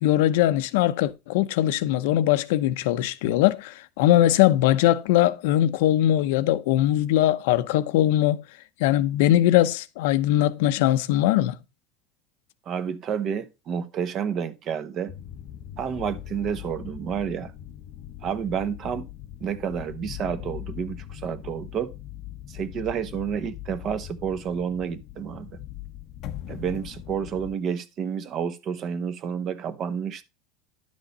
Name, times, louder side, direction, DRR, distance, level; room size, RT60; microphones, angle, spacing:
voice 1, 0.0-8.4 8.8-11.6, left 13 dB, 75° left, 0.8 m, -21 dB
voice 2, 12.7-15.1 15.8-17.5 18.2-19.1 19.4-21.9 22.5-25.6 26.5-30.2, right 7 dB, 35° right, 1.0 m, -30 dB
sound 1, 15.1-27.6, left 12 dB, 40° left, 0.8 m, -40 dB
11.0 x 6.3 x 4.1 m
cardioid pair, 165°, 0 cm